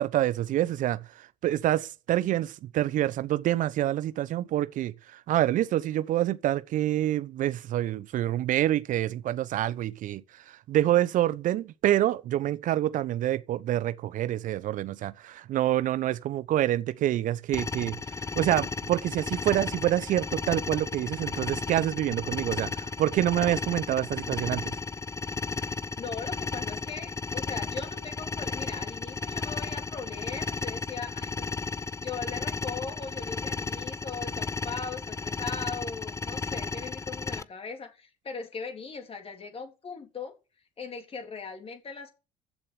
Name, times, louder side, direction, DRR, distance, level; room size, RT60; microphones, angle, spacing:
voice 1, 0.0-18.0 18.3-24.7, right 13 dB, 50° right, 0.9 m, -27 dB
sound 1, 17.5-37.4, left 4 dB, 20° left, 0.7 m, -34 dB
voice 2, 26.0-31.5 32.0-40.3 40.8-42.1, left 5 dB, 35° left, 3.5 m, -39 dB
14.5 x 7.5 x 6.7 m
hypercardioid pair, 60°, 17 cm